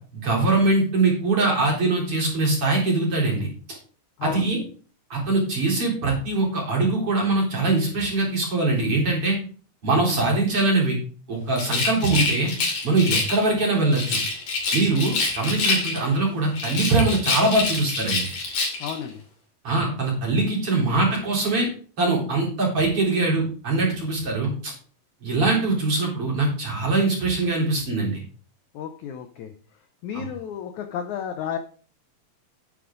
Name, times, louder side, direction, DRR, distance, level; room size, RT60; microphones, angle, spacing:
voice 1, 0.1-3.5 4.2-4.6 5.1-9.4 9.8-11.0 11.3-12.5 12.8-14.2 14.7-18.3 19.6-21.7 22.0-24.7 25.2-28.2 30.1-30.2, right 2 dB, 35° right, -3 dB, 4.6 m, -22 dB
voice 2, 4.2-4.5 18.8-19.2 28.7-29.5 30.0-31.6, left 8 dB, 85° left, 7 dB, 1.6 m, -32 dB
Rattle, 11.5-13.5 13.9-16.2 16.5-19.0, left 3 dB, 60° left, 4.2 m, -26 dB
9.9 x 9.4 x 3.8 m, 0.42 s
omnidirectional pair, 4.4 m